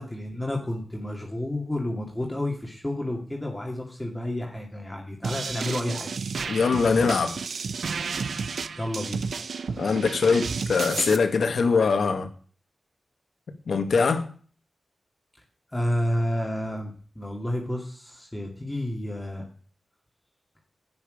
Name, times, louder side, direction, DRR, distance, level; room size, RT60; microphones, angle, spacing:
voice 1, 0.0-6.1 8.8-9.3 15.7-19.4, left 1 dB, 10° left, 2.3 m, -30 dB
sound 1, 5.2-11.2, right 5 dB, 75° right, 0.7 m, -32 dB
voice 2, 6.5-7.4 9.8-12.3 13.7-14.3, left 5 dB, 75° left, 1.7 m, -22 dB
12.0 x 9.4 x 5.1 m
wide cardioid pair, 125°, 0 cm